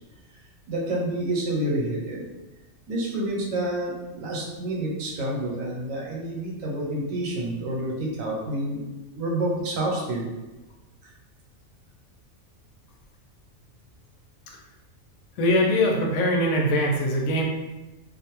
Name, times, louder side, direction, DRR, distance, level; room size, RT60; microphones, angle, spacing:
voice 1, 0.7-2.2 2.9-8.8 9.1-10.3 11.0-11.1, right 1 dB, 80° right, -3 dB, 1.1 m, -28 dB
voice 2, 15.4-17.4, left 1 dB, 85° left, 0 dB, 1.0 m, -22 dB
2.5 x 2.1 x 2.9 m, 1.1 s
omnidirectional pair, 1.4 m